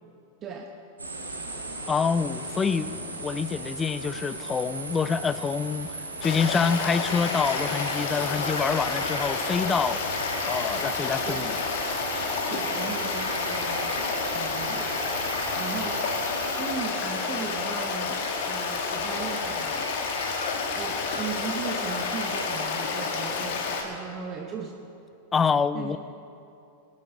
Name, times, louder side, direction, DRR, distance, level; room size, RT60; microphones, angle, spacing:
voice 1, 0.4-0.7 11.2-11.5 12.5-14.9 15.6-16.2 16.5-20.1 20.7-24.8 25.7-26.0, right 6 dB, 30° right, 3 dB, 0.9 m, -37 dB
sound 1, 1.0-16.7, right 2 dB, 80° right, 1.8 m, -37 dB
voice 2, 1.9-10.0 10.5-11.5 25.3-26.0, left 5 dB, 20° left, 15 dB, 0.4 m, -26 dB
Stream, 6.2-23.8, left 4 dB, 50° left, 1.7 m, -30 dB
sound 2, 7.1-22.6, left 1 dB, 85° left, 1.3 m, -41 dB
18.5 x 10.5 x 4.2 m, 2.7 s
figure-of-eight pair, 90°, 0 cm